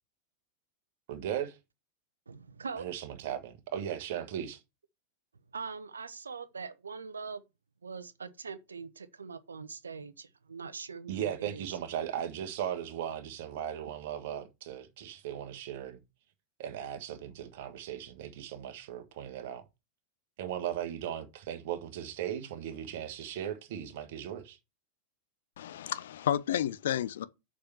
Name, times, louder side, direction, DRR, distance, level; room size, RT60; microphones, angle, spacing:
voice 1, 1.1-1.6 2.7-4.6 11.1-16.0 16.6-19.6 20.4-24.6, right 10 dB, 50° right, 1.4 m, -37 dB
voice 2, 2.3-2.9 5.5-7.4 7.8-11.7, right 5 dB, 75° right, 1.0 m, -42 dB
voice 3, 25.6-27.3, left 10 dB, 60° left, 0.7 m, -31 dB
6.9 x 5.0 x 7.1 m
figure-of-eight pair, 90°, 0 cm